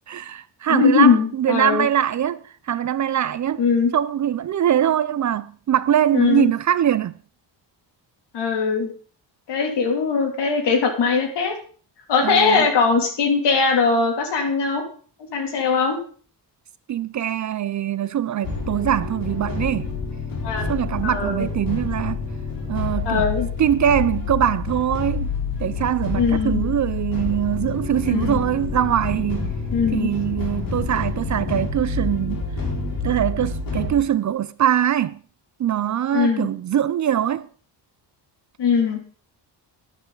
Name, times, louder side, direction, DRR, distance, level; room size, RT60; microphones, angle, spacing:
voice 1, 0.1-3.7 3.9-7.1 12.2-12.7 16.9-19.9 20.7-22.2 22.7-23.3 23.6-25.3 25.6-29.5 29.9-32.5 33.0-35.2 35.6-37.5, right 10 dB, 45° right, 0.5 m, -22 dB
voice 2, 0.7-1.9 3.6-3.9 6.1-6.5 8.3-8.9 9.5-11.5 12.1-14.8 15.3-16.0 20.4-20.7 21.0-21.5 23.0-23.5 26.1-26.6 28.1-28.4 29.7-30.1 36.1-36.5 38.6-39.0, left 5 dB, 70° left, 2.9 m, -20 dB
sound 1, 18.4-34.0, left 4 dB, 50° left, 3.8 m, -28 dB
12.0 x 10.5 x 3.9 m
cardioid pair, 135°, 43 cm